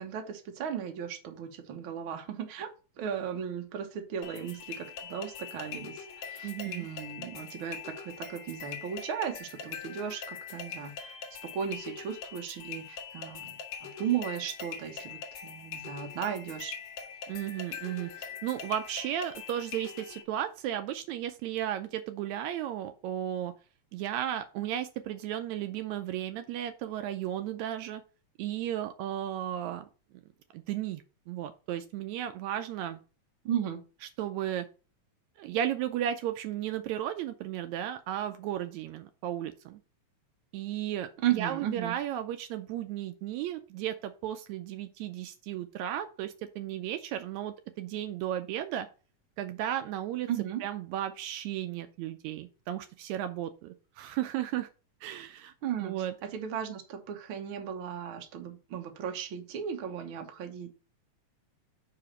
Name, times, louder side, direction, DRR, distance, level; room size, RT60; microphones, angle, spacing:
voice 1, 0.0-2.7 3.0-11.2 11.4-13.5 13.8-16.8 33.4-33.8 41.2-41.9 50.3-50.6 55.6-60.7, right 9 dB, 60° right, 4 dB, 1.5 m, -36 dB
sound 1, 4.2-20.2, left 6 dB, 70° left, 2.3 m, -43 dB
voice 2, 6.4-6.9 17.3-23.5 23.9-28.0 28.4-29.9 30.5-33.0 34.2-34.7 35.4-39.8 40.5-41.1 41.4-48.9 49.4-50.3 50.6-54.7 55.0-55.5 55.8-56.1, right 11 dB, 80° right, 9 dB, 1.8 m, -34 dB
5.0 x 4.9 x 5.9 m, 0.34 s
omnidirectional pair, 3.3 m